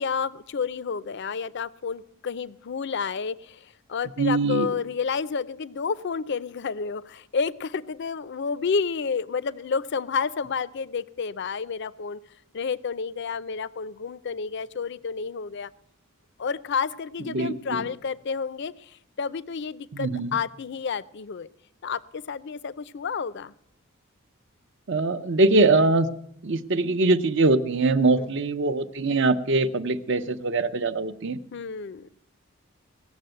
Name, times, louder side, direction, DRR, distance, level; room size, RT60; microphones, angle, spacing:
voice 1, 0.0-12.2 12.5-15.7 16.4-21.5 21.8-23.5 28.2-28.3 31.5-32.1, left 5 dB, 55° left, 18 dB, 0.5 m, -30 dB
voice 2, 4.2-4.7 17.3-17.8 19.9-20.3 24.9-26.1 26.4-31.4, right 3 dB, 55° right, 12 dB, 0.7 m, -22 dB
17.5 x 7.0 x 7.8 m, 0.72 s
head